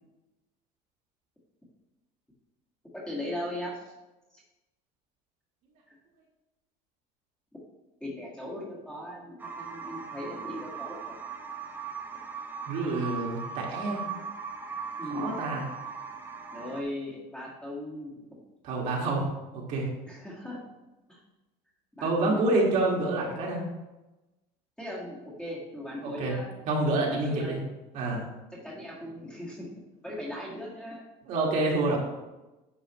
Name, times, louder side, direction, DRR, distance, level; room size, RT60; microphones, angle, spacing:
voice 1, 2.9-3.8 8.0-11.1 15.0-15.4 16.5-18.1 20.1-20.6 21.1-21.2 22.0-22.6 24.8-26.5 27.1-27.6 28.5-29.7 30.0-31.0, left 1 dB, 5° left, -5 dB, 1.8 m, -38 dB
sound 1, 9.4-16.8, right 6 dB, 10° right, 0.5 m, -39 dB
voice 2, 12.7-14.0 15.1-15.6 18.6-19.3 19.5-19.9 22.0-23.6 26.0-26.4 26.7-27.6 27.9-28.3 31.3-32.0, right 2 dB, 50° right, -2 dB, 1.9 m, -27 dB
9.9 x 6.9 x 3.1 m, 1.1 s
cardioid pair, 175°, 16 cm